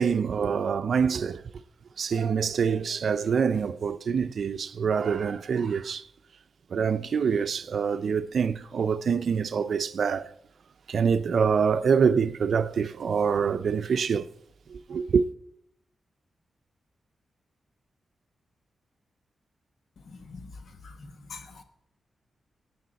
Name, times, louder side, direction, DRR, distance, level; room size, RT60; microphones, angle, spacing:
voice 1, 0.0-1.4 2.0-6.0 6.7-10.3 10.9-14.3 14.7-15.2, right 6 dB, 70° right, 0.5 m, -25 dB
voice 2, 20.1-20.5 20.8-20.9 21.3-21.6, left 4 dB, 70° left, 1.3 m, -43 dB
22.5 x 8.5 x 4.1 m
cardioid pair, 75°, 0 cm